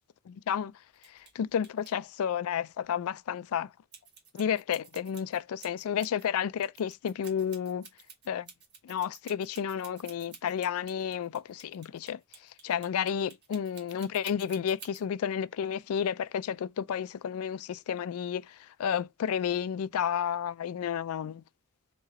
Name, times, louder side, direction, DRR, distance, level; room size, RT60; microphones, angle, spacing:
voice 1, 0.3-0.7 1.1-3.7 4.3-7.9 8.3-8.5 8.8-12.2 12.6-21.4, left 8 dB, 85° left, 0.3 m, -31 dB
sound 1, 1.0-1.3 1.6-1.9 3.9-6.3 6.6-15.0, right 6 dB, 50° right, 1.6 m, -51 dB
4.1 x 3.0 x 3.7 m
head